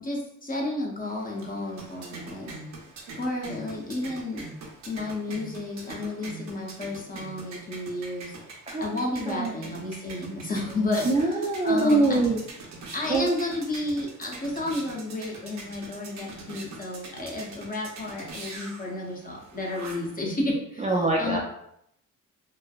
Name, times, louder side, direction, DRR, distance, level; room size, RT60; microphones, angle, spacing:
voice 1, 0.0-2.5 3.2-4.5 4.9-8.3 8.8-11.1 11.6-12.3 12.9-20.8 21.2-21.4, left 2 dB, 25° left, -1 dB, 0.7 m, -31 dB
sound 1, 1.0-20.2, right 3 dB, 60° right, 0.8 m, -43 dB
voice 2, 9.3-9.6 11.0-12.4 13.1-13.3 20.8-21.4, right 2 dB, 20° right, -2 dB, 0.4 m, -23 dB
3.1 x 2.1 x 2.3 m, 0.74 s
cardioid pair, 90°, 32 cm